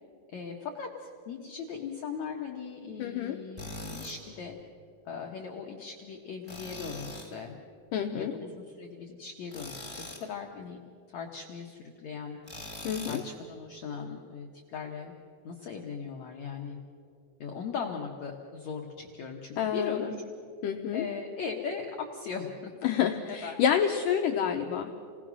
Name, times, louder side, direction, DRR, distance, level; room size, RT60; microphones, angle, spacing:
voice 1, 0.3-4.6 5.0-7.6 8.2-8.5 8.8-10.8 11.1-12.4 13.1-15.1 15.4-16.8 17.4-20.1 20.9-22.9 23.3-23.6, left 6 dB, 70° left, 1 dB, 1.7 m, -39 dB
voice 2, 3.0-3.4 7.9-8.3 12.8-13.2 19.6-20.1 20.6-21.1 22.8-24.9, left 8 dB, 85° left, 4 dB, 1.9 m, -28 dB
Tools, 3.6-4.2 6.5-7.3 9.5-10.3 12.4-13.3, left 1 dB, 5° right, 2.5 m, -41 dB
28.5 x 19.0 x 6.2 m, 2.6 s
omnidirectional pair, 4.9 m